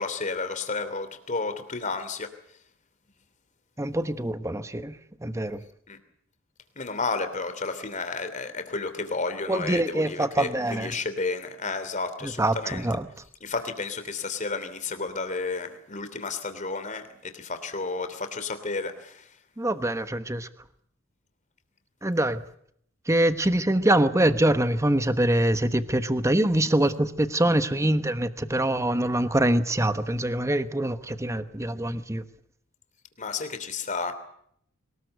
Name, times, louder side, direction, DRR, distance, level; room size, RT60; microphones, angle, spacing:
voice 1, 0.0-2.3 5.9-6.0 6.8-12.8 13.4-19.4 33.2-34.1, left 4 dB, 35° left, 3.1 m, -32 dB
voice 2, 3.8-5.6 9.5-10.9 12.2-13.1 19.6-20.5 22.0-22.4 23.1-32.3, right 1 dB, 15° right, 1.2 m, -24 dB
23.0 x 20.0 x 8.1 m
head